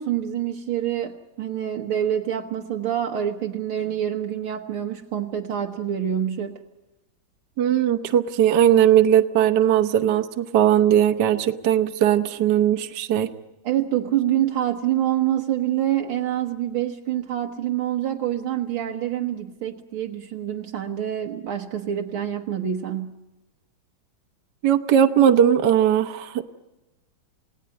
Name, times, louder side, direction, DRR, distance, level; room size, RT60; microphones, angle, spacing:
voice 1, 0.0-6.6 13.6-23.2, right 11 dB, 80° right, 1 dB, 2.1 m, -26 dB
voice 2, 7.6-13.3 24.6-26.4, right 10 dB, 60° right, 7 dB, 1.5 m, -19 dB
29.0 x 18.0 x 9.6 m, 1.1 s
omnidirectional pair, 2.3 m